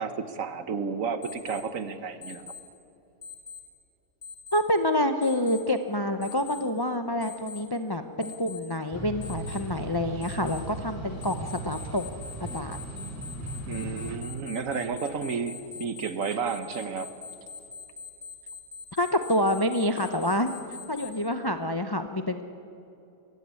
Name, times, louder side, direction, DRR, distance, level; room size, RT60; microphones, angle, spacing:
voice 1, 0.0-2.5 13.7-17.1, right 5 dB, 55° right, 11 dB, 1.3 m, -32 dB
Alarm, 1.2-1.6 2.2-2.6 3.2-3.6 4.2-4.6 5.2-5.6 6.2-6.6 7.2-7.6 8.2-8.6 9.2-9.6 10.2-10.6 11.2-21.1, left 5 dB, 45° left, 3.9 m, -42 dB
voice 2, 4.5-12.1 12.4-12.8 18.9-20.5 20.9-22.4, left 1 dB, 30° left, 8 dB, 0.4 m, -27 dB
sound 1, 8.9-14.2, right 2 dB, 10° right, 3.1 m, -38 dB
22.5 x 15.0 x 9.6 m, 2.8 s
omnidirectional pair, 1.8 m